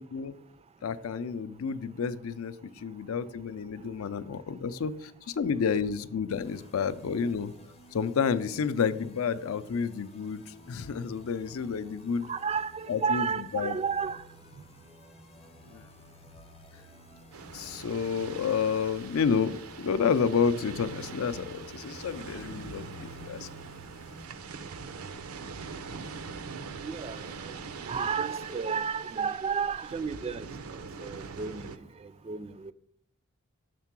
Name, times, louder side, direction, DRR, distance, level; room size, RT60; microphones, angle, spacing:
voice 1, 0.8-5.1 5.4-7.5 7.9-12.3 12.9-13.2 13.5-13.7 15.7-15.8 17.5-23.5, left 6 dB, 75° left, 0.4 m, -30 dB
sound 1, 6.3-24.3, left 2 dB, 30° left, 0.6 m, -53 dB
voice 2, 12.3-14.2 26.8-27.6 27.8-31.7 32.0-32.7, right 6 dB, 30° right, 0.3 m, -32 dB
sound 2, 17.3-31.8, right 5 dB, 90° right, 0.5 m, -43 dB
6.7 x 3.7 x 5.9 m
head